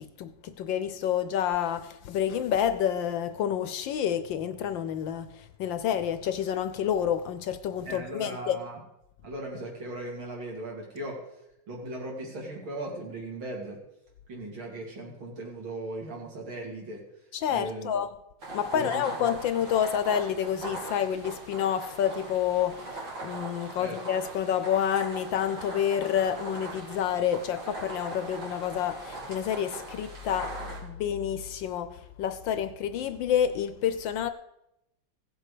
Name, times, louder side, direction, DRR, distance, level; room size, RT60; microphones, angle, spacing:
voice 1, 0.0-8.6 17.3-18.1 18.5-34.3, left 9 dB, 70° left, 1.3 m, -29 dB
voice 2, 7.9-8.8 9.2-11.2 11.7-13.8 14.3-17.0 17.5-17.9 18.7-19.0 23.8-24.0, right 2 dB, 70° right, 3.8 m, -38 dB
sound 1, 18.4-30.8, right 2 dB, 85° right, 4.6 m, -40 dB
16.5 x 7.6 x 5.0 m
omnidirectional pair, 2.3 m